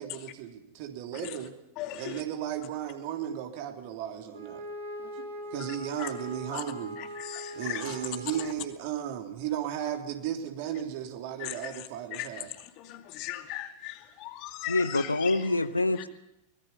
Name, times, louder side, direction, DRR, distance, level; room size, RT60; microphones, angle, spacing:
voice 1, 0.0-1.5 2.0-4.6 5.0-7.0 7.5-12.5, right 10 dB, 50° right, 4 dB, 3.2 m, -35 dB
Wind instrument woodwind instrument, 4.3-8.9, equal, 75° right, 6.6 m, -41 dB
voice 2, 7.3-7.8 11.4-11.5 12.1-12.3 12.9-15.4, left 14 dB, 40° left, 6 dB, 2.5 m, -37 dB
voice 3, 14.7-16.1, left 2 dB, 80° left, 13 dB, 1.0 m, -26 dB
24.5 x 21.5 x 5.6 m, 0.87 s
figure-of-eight pair, 90°, 0 cm